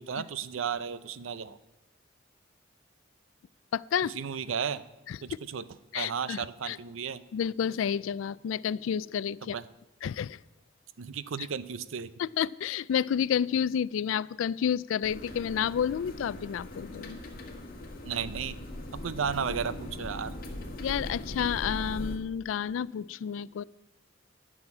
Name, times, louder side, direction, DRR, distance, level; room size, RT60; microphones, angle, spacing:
voice 1, 0.0-1.6 4.0-4.8 5.2-5.6 5.9-7.2 9.4-9.6 11.0-12.1 18.0-18.6 18.9-20.4, right 7 dB, 90° right, 15 dB, 0.6 m, -34 dB
voice 2, 3.7-4.1 5.1-5.2 5.9-6.8 7.3-9.5 10.0-10.4 12.2-17.2 20.8-23.6, left 8 dB, 85° left, 21 dB, 0.3 m, -30 dB
sound 1, 15.0-22.2, left 1 dB, 50° left, 1.8 m, -40 dB
12.0 x 6.4 x 8.6 m, 1.0 s
head